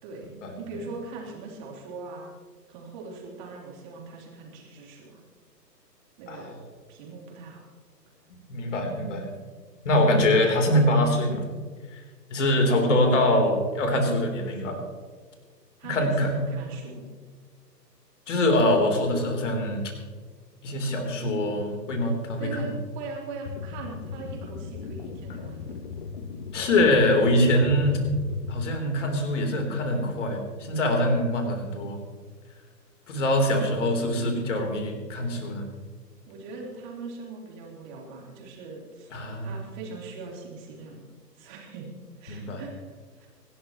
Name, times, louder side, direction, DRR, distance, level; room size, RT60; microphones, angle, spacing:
voice 1, 0.6-2.3 2.7-5.2 6.2-6.6 6.9-7.7 10.0-10.4 12.5-12.6 15.8-17.0 22.4-25.8 33.5-33.9 36.3-39.1 39.4-41.0 41.4-41.9 42.2-42.8 43.2-43.3, right 3 dB, 25° right, -2 dB, 3.7 m, -40 dB
voice 2, 8.5-9.3 9.8-11.4 11.9-12.0 12.3-14.8 15.8-16.3 18.3-19.8 20.6-22.7 26.5-28.0 28.5-32.0 33.1-35.7 39.1-39.5 42.3-42.6, left 1 dB, 45° left, 3 dB, 3.7 m, -24 dB
sound 1, 23.5-28.5, left 5 dB, 30° left, 1.2 m, -36 dB
25.5 x 12.5 x 3.1 m, 1.6 s
figure-of-eight pair, 130°, 50 cm